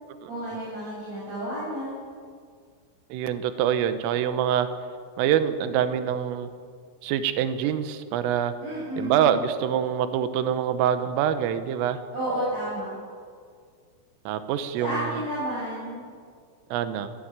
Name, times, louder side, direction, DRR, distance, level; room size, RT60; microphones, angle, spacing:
voice 1, 0.3-2.0 8.6-9.4 12.1-12.9 14.8-16.0, right 1 dB, 35° right, -9 dB, 8.7 m, -31 dB
voice 2, 3.1-4.7 5.2-6.5 7.0-8.5 9.0-12.0 14.3-15.2 16.7-17.1, right 9 dB, 80° right, 10 dB, 3.7 m, -25 dB
26.0 x 16.0 x 8.9 m, 2.1 s
omnidirectional pair, 5.8 m